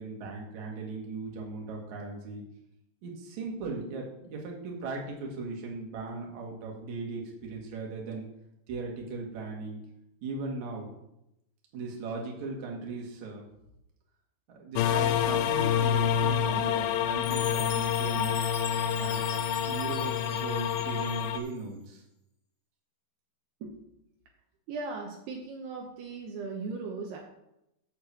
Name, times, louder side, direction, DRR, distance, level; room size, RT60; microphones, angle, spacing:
voice 1, 0.0-2.4 3.0-8.2 8.7-9.8 10.2-10.9 11.7-13.4 14.5-18.3 18.9-22.0 23.6-23.7, right 3 dB, 50° right, -1 dB, 2.7 m, -38 dB
sound 1, 14.8-21.4, left 9 dB, 80° left, 2.8 m, -27 dB
Chime, 17.2-21.5, left 4 dB, 60° left, 1.0 m, -42 dB
voice 2, 24.7-27.2, right 4 dB, 75° right, 0 dB, 2.9 m, -37 dB
6.8 x 6.2 x 7.3 m, 0.84 s
omnidirectional pair, 5.1 m